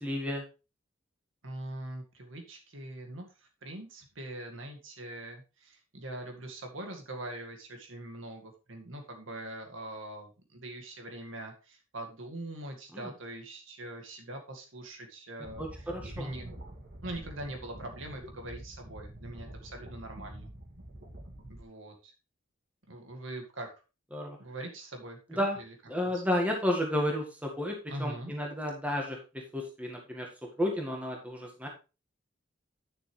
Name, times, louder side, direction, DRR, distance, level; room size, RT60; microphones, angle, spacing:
voice 1, 0.0-0.4 12.9-13.1 15.6-16.3 24.1-24.4 25.3-25.6 25.9-29.2 29.5-30.3 30.6-31.7, left 1 dB, 5° right, 0 dB, 1.8 m, -32 dB
voice 2, 1.4-15.7 16.0-16.5 17.0-20.5 21.5-22.1 22.9-23.7 24.4-25.7 26.0-26.2 27.9-28.3, right 1 dB, 85° right, 3 dB, 2.0 m, -42 dB
sound 1, 15.4-21.6, right 1 dB, 60° right, 2.4 m, -46 dB
10.5 x 6.7 x 3.3 m, 0.31 s
head